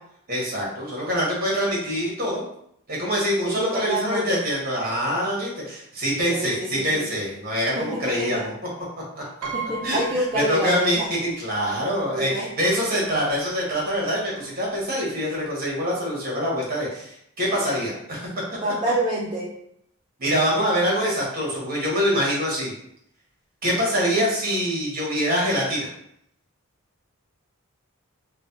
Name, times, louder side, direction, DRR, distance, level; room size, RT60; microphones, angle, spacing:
voice 1, 0.3-2.4 2.9-8.5 9.1-9.2 9.8-18.3 20.2-22.7 23.6-25.9, equal, 40° right, -4 dB, 1.0 m, -25 dB
voice 2, 3.4-4.4 6.3-6.7 6.9-7.0 7.8-8.4 9.5-10.9 12.1-12.5 18.6-19.5, right 1 dB, 20° right, -7 dB, 0.4 m, -26 dB
Piano, 9.4-11.2 11.6-11.7 12.8-12.9 13.2-13.5, right 5 dB, 85° right, 0.4 m, -35 dB
3.1 x 2.1 x 2.6 m, 0.72 s
head